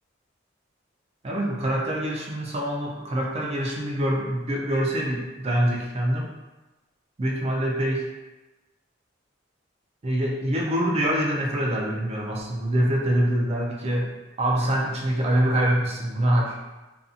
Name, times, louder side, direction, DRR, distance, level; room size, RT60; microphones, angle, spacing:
voice 1, 1.2-6.3 7.2-8.0 10.0-14.1 14.4-16.6, right 1 dB, 35° right, -2 dB, 0.4 m, -25 dB
2.6 x 2.5 x 2.4 m, 1.1 s
head